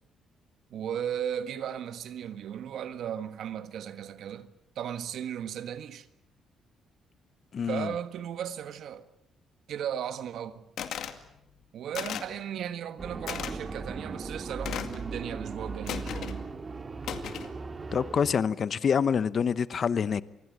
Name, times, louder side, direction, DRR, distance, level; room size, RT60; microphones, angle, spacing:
voice 1, 0.7-6.1 7.7-9.1 9.7-10.7 11.7-16.5, right 9 dB, 70° right, 1.6 m, -36 dB
voice 2, 7.5-7.9 17.9-20.2, left 7 dB, 50° left, 0.9 m, -26 dB
sound 1, 10.8-11.2 11.9-12.4 13.3-13.5 14.6-15.0 15.9-16.4 17.0-17.5, left 9 dB, 75° left, 2.2 m, -36 dB
sound 2, 13.0-18.3, right 4 dB, 35° right, 1.9 m, -38 dB
27.5 x 20.5 x 8.0 m
cardioid pair, 90°, 0 cm